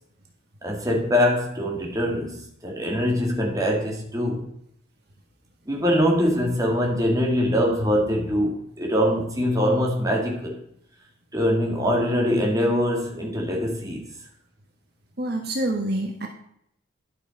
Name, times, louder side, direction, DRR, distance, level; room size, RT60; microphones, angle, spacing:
voice 1, 0.6-4.5 5.7-10.6 11.3-14.0, equal, 15° right, -1 dB, 2.0 m, -23 dB
voice 2, 15.2-16.3, right 1 dB, 50° right, 2 dB, 1.3 m, -26 dB
11.5 x 6.1 x 5.1 m, 0.72 s
head